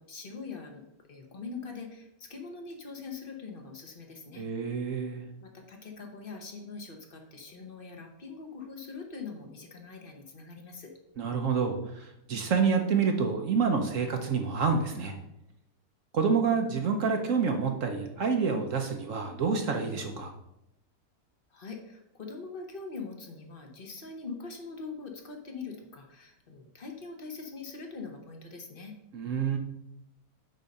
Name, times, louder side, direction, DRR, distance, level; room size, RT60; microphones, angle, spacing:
voice 1, 0.0-4.5 5.4-10.9 21.5-28.9, left 4 dB, 35° left, 3 dB, 1.1 m, -43 dB
voice 2, 4.4-5.2 11.2-15.1 16.1-20.3 29.1-29.6, right 5 dB, 55° right, 5 dB, 1.0 m, -28 dB
9.3 x 4.1 x 5.3 m, 0.84 s
omnidirectional pair, 1.8 m